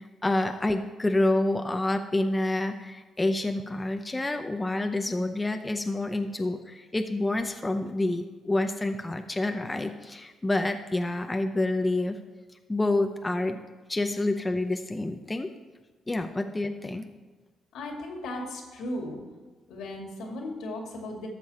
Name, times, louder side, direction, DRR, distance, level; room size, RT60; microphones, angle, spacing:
voice 1, 0.0-12.2 12.7-13.6 13.9-15.5 16.1-17.1, left 2 dB, 15° left, 6 dB, 0.6 m, -28 dB
voice 2, 17.7-19.2 19.7-21.3, left 1 dB, 85° left, 1 dB, 2.3 m, -36 dB
12.5 x 6.8 x 4.3 m, 1.3 s
cardioid pair, 90°, 0 cm